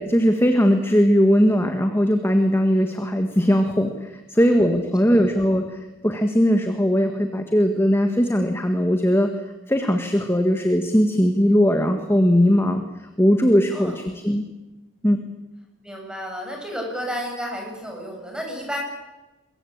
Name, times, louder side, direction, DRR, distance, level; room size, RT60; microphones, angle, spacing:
voice 1, 0.0-9.3 9.7-12.8 13.2-14.4 15.0-15.2, equal, 10° left, 5 dB, 1.7 m, -19 dB
voice 2, 15.8-18.8, equal, 5° right, 1 dB, 7.3 m, -32 dB
24.5 x 22.5 x 8.7 m, 1.1 s
head